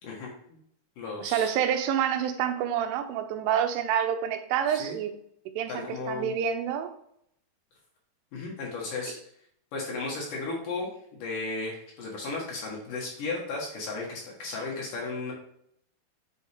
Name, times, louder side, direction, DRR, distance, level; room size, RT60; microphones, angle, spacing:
voice 1, 0.0-0.6 1.0-1.5 4.7-4.9 5.7-6.3 8.3-9.2 9.7-15.3, left 3 dB, 60° left, -3 dB, 2.4 m, -35 dB
voice 2, 1.2-5.1 5.6-6.9, right 9 dB, 90° right, 7 dB, 3.3 m, -28 dB
8.3 x 5.4 x 3.5 m, 0.69 s
omnidirectional pair, 5.5 m